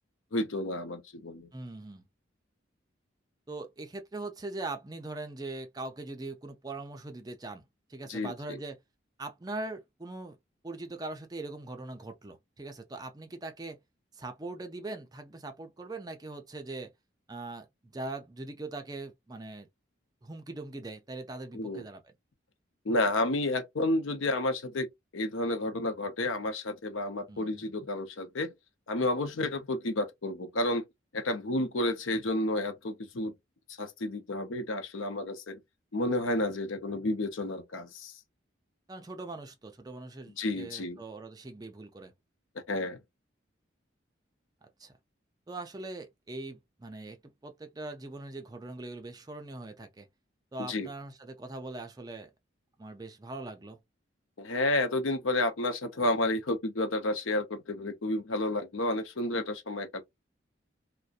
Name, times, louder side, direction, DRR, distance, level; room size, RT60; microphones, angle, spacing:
voice 1, 0.3-1.5 8.1-8.6 21.5-21.8 22.8-24.9 25.1-28.5 28.9-30.8 31.1-33.3 33.8-35.6 35.9-38.2 40.4-41.0 42.7-43.0 50.7-50.9 54.4-60.0, left 2 dB, 85° left, 0.7 m, -31 dB
voice 2, 1.5-2.0 3.5-7.6 7.9-8.8 9.2-10.4 10.6-13.8 14.1-16.9 17.3-19.7 20.2-22.1 27.3-27.7 38.9-42.1 44.6-44.9 45.5-50.1 50.5-52.3 52.8-53.8, right 2 dB, 20° right, 0.4 m, -41 dB
2.6 x 2.1 x 2.3 m
head